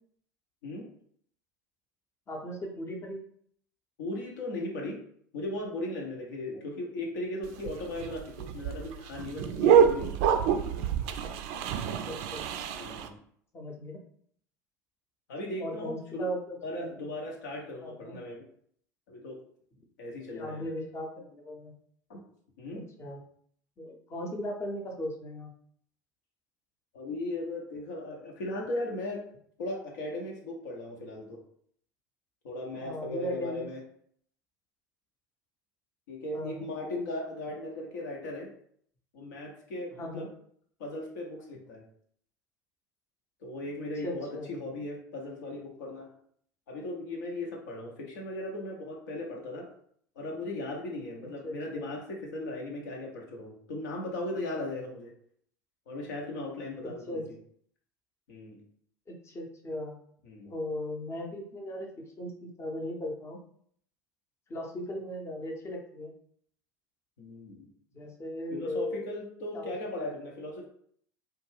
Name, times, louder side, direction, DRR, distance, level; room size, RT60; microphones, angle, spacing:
voice 1, 2.3-3.2 6.5-6.6 12.0-12.5 13.5-14.0 15.6-16.9 17.8-18.2 20.3-21.7 22.7-23.2 23.8-25.5 32.7-33.7 36.3-36.7 40.0-40.3 44.0-44.5 51.4-51.9 57.1-57.3 59.1-60.0 60.4-63.4 64.5-66.1 67.9-69.1 69.5-69.7, left 1 dB, 25° left, 1 dB, 0.7 m, -37 dB
voice 2, 4.0-5.0 5.3-10.2 12.8-13.1 15.3-16.3 16.6-18.4 19.1-19.4 20.0-20.7 22.1-22.2 22.6-22.8 26.9-29.2 29.6-31.4 32.4-33.8 36.1-38.5 39.1-40.3 40.8-41.8 43.4-46.1 46.7-49.7 50.2-55.1 55.9-57.2 58.3-58.6 60.2-60.5 67.2-67.7 68.5-70.6, left 1 dB, 70° left, -1 dB, 0.7 m, -37 dB
sound 1, 7.4-13.1, right 7 dB, 55° right, 0.3 m, -26 dB
2.5 x 2.3 x 3.2 m, 0.62 s
figure-of-eight pair, 70°, 10 cm